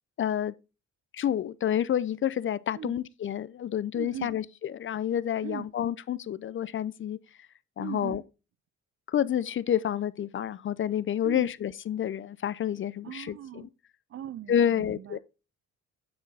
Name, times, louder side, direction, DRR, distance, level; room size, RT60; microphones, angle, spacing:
voice 1, 0.2-0.5 1.1-7.2 7.8-8.2 9.1-13.7 14.5-15.2, left 9 dB, 40° left, 0.5 m, -29 dB
voice 2, 3.9-4.4 5.4-5.7 7.8-8.2 11.2-11.5 13.0-13.7 14.1-15.2, right 11 dB, 45° right, 0.4 m, -39 dB
9.6 x 3.8 x 4.0 m
cardioid pair, 90°, 30 cm